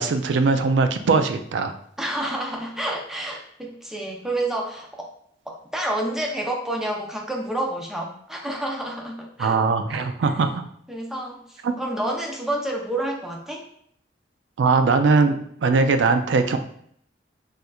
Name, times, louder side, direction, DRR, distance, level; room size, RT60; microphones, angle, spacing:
voice 1, 0.0-1.7 9.4-10.6 11.6-11.7 14.6-16.6, right 4 dB, 80° right, 8 dB, 0.4 m, -20 dB
voice 2, 2.0-5.1 5.5-9.6 10.0-10.1 10.9-13.7, right 1 dB, 5° right, -1 dB, 0.5 m, -29 dB
4.2 x 2.5 x 2.3 m, 0.66 s
head